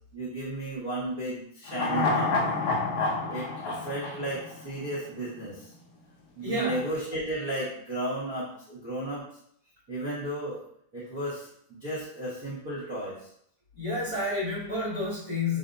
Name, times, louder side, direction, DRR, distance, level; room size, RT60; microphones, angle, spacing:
voice 1, 0.1-2.5 3.3-5.7 6.3-9.2 9.9-10.6 10.9-13.2, right 1 dB, 40° right, -7 dB, 1.3 m, -34 dB
sound 1, 1.7-5.1 5.4-5.5, left 3 dB, 70° left, 1.6 m, -28 dB
voice 2, 6.4-6.8 13.7-15.6, left 2 dB, 30° left, -11 dB, 2.0 m, -30 dB
6.9 x 2.8 x 2.7 m, 0.68 s
omnidirectional pair, 3.7 m